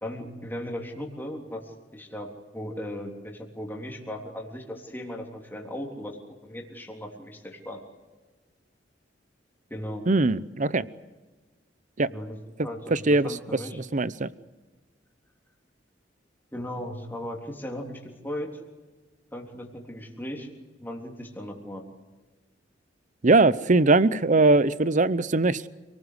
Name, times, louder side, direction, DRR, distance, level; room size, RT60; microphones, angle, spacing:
voice 1, 0.0-7.8 9.7-10.1 12.1-13.8 16.5-18.6 19.3-20.5 20.8-21.9, left 1 dB, 10° left, 3.5 m, -37 dB
voice 2, 10.1-10.8 12.0-12.1 12.9-13.3 13.9-14.3 23.2-25.7, right 3 dB, 40° right, 0.8 m, -21 dB
29.0 x 19.0 x 8.1 m
head